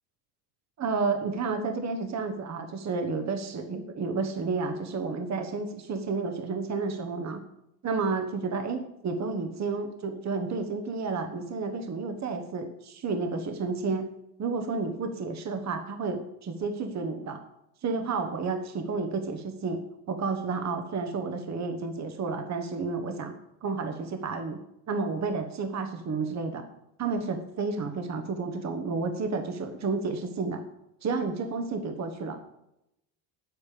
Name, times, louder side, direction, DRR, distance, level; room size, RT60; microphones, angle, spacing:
voice 1, 0.8-7.4 7.8-14.1 14.4-17.4 17.8-19.8 20.1-23.3 23.6-24.6 24.9-26.6 27.0-30.6 31.0-32.4, right 4 dB, 35° right, 6 dB, 1.4 m, -31 dB
8.3 x 8.2 x 5.0 m, 0.82 s
supercardioid pair, 80°, 48 cm